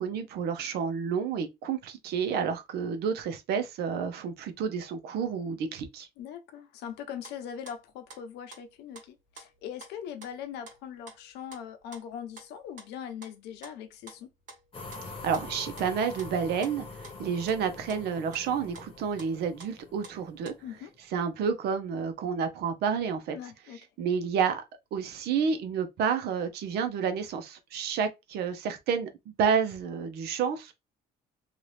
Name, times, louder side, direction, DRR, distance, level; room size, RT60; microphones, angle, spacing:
voice 1, 0.0-6.1 15.2-20.5 21.1-23.4 24.0-24.6 24.9-30.7, right 6 dB, 75° right, 0.7 m, -30 dB
voice 2, 6.2-14.3 20.6-20.9 23.3-23.9, left 8 dB, 85° left, 0.8 m, -41 dB
sound 1, 6.9-7.0 7.2-19.8 20.0-20.5, right 2 dB, 50° right, 1.4 m, -51 dB
sound 2, 14.7-21.0, left 3 dB, 30° left, 1.0 m, -45 dB
2.7 x 2.5 x 3.3 m
cardioid pair, 110°, 17 cm